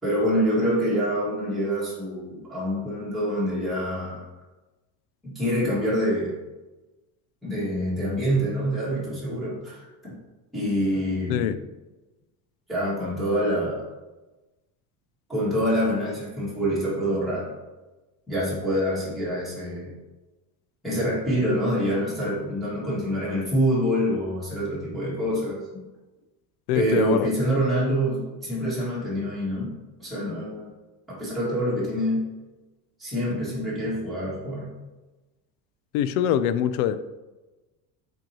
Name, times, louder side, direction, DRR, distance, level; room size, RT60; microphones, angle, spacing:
voice 1, 0.0-4.3 5.2-6.3 7.4-10.2 10.5-11.4 12.7-13.9 15.3-17.5 18.3-19.9 20.8-25.8 26.7-29.7 30.0-30.7 31.1-32.3 33.0-34.7, equal, ahead, -10 dB, 2.1 m, -26 dB
voice 2, 26.7-27.3 35.9-37.0, left 10 dB, 90° left, 13 dB, 0.6 m, -23 dB
7.7 x 4.6 x 3.0 m, 1.1 s
cardioid pair, 175°, 41 cm